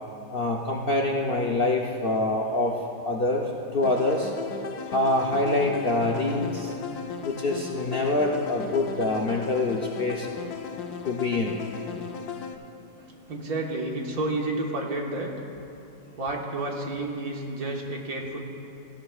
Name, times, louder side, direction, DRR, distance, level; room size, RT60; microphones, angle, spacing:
voice 1, 0.3-2.8 3.1-3.5 3.7-4.3 4.9-6.7 7.2-10.3 11.0-11.6, left 2 dB, 50° left, -1 dB, 0.7 m, -25 dB
sound 1, 3.8-12.5, left 6 dB, 80° left, 1.2 m, -36 dB
voice 2, 13.0-15.3 16.2-18.4, right 2 dB, 70° right, 0 dB, 1.9 m, -31 dB
17.5 x 15.5 x 2.4 m, 2.6 s
omnidirectional pair, 1.7 m